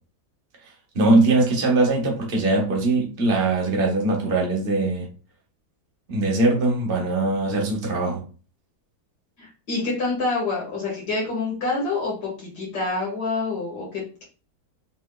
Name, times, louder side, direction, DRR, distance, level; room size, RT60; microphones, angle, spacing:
voice 1, 0.9-5.1 6.1-8.2, right 2 dB, 35° right, -1 dB, 1.4 m, -21 dB
voice 2, 9.4-14.2, left 3 dB, 75° left, -4 dB, 2.3 m, -27 dB
6.1 x 3.5 x 2.3 m, 0.37 s
omnidirectional pair, 1.8 m